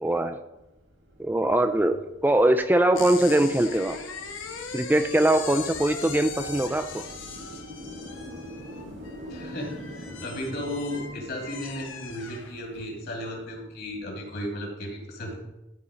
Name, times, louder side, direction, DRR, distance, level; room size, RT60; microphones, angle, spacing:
voice 1, 0.0-0.4 1.2-4.0 4.7-7.0, right 1 dB, 10° right, 8 dB, 0.3 m, -22 dB
sound 1, 0.5-14.0, equal, 75° right, 2.1 m, -45 dB
sound 2, 2.9-12.9, left 5 dB, 85° left, 1.2 m, -40 dB
voice 2, 9.3-9.8 10.2-15.3, equal, 55° left, 0 dB, 2.5 m, -34 dB
12.5 x 4.3 x 5.0 m, 0.97 s
head